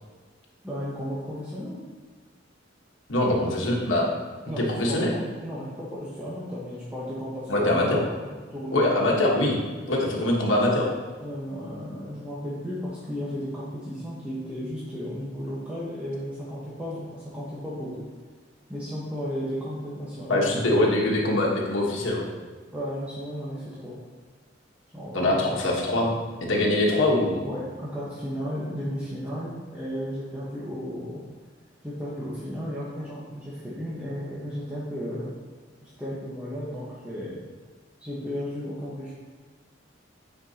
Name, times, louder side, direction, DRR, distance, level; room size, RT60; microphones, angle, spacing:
voice 1, 0.6-1.8 4.4-9.1 11.2-18.0 18.7-20.7 22.7-23.9 24.9-25.5 27.4-31.2 31.8-35.3 35.8-37.4 38.0-39.1, equal, 10° right, -9 dB, 1.1 m, -34 dB
voice 2, 3.1-4.1 4.6-5.1 7.5-8.0 8.7-9.6 9.9-10.9 20.3-22.3 25.1-26.1 26.5-27.4, left 1 dB, 80° left, -2 dB, 1.3 m, -23 dB
9.5 x 4.5 x 2.9 m, 1.4 s
head